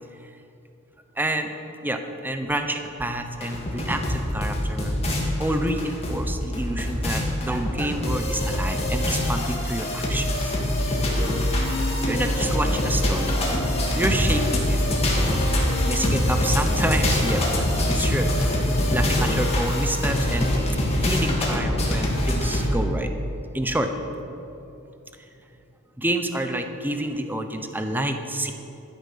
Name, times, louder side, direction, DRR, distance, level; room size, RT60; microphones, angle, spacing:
voice 1, 1.2-1.5 1.8-5.0 5.4-10.5 11.6-13.4 13.9-14.8 15.8-18.3 18.9-20.5 20.8-23.1 23.5-23.9 26.0-28.5, right 1 dB, 10° right, 6 dB, 0.8 m, -28 dB
sound 1, 3.4-22.7, left 1 dB, 30° left, 2.1 m, -24 dB
Human voice, 11.5-12.4 13.0-14.6 15.4-16.7, left 2 dB, 50° left, 0.9 m, -36 dB
12.5 x 9.7 x 5.8 m, 2.7 s
head